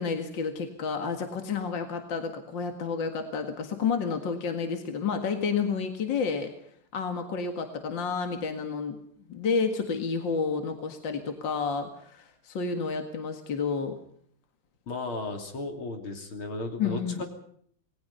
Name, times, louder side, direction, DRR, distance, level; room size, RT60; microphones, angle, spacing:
voice 1, 0.0-6.5 6.9-9.0 9.3-13.9 16.8-17.3, left 5 dB, 60° left, 6 dB, 2.5 m, -30 dB
voice 2, 14.9-17.3, left 2 dB, 80° left, 4 dB, 3.9 m, -35 dB
28.0 x 19.5 x 5.6 m, 0.62 s
omnidirectional pair, 2.3 m